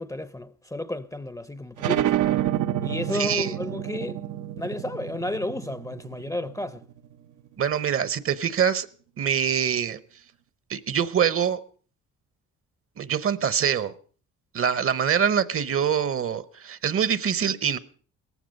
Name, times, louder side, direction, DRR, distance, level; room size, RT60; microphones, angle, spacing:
voice 1, 0.0-2.1 2.8-4.2 4.6-6.8, left 1 dB, 10° left, 0.6 m, -32 dB
sound 1, 1.8-7.1, right 12 dB, 80° right, 0.8 m, -28 dB
voice 2, 3.1-3.5 7.6-8.9 9.2-10.0 10.7-11.6 13.0-13.9 14.5-17.8, right 8 dB, 45° right, 0.9 m, -24 dB
17.5 x 14.5 x 5.3 m
cardioid pair, 90°, 30 cm